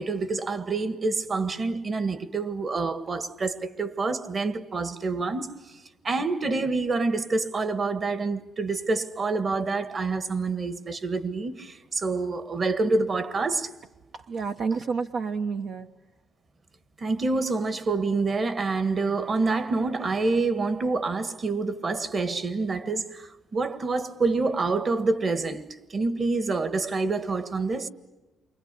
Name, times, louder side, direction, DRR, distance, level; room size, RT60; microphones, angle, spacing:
voice 1, 0.0-5.5 6.0-13.7 17.0-25.6 25.9-27.9, right 3 dB, 40° right, 1.7 m, -27 dB
voice 2, 14.1-15.9, right 5 dB, 65° right, 0.9 m, -29 dB
29.5 x 24.0 x 8.4 m
cardioid pair, 90°, 0 cm